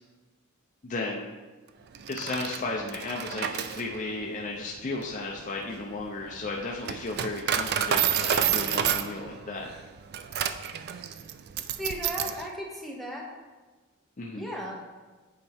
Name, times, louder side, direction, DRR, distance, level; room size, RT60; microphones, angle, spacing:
voice 1, 0.8-1.3 2.1-9.7 14.2-14.5, left 2 dB, 35° left, -2 dB, 0.6 m, -34 dB
Coin (dropping), 1.9-12.5, right 9 dB, 50° right, 0.3 m, -30 dB
voice 2, 11.8-13.3 14.3-14.8, equal, ahead, -3 dB, 1.0 m, -35 dB
8.5 x 4.5 x 3.4 m, 1.3 s
head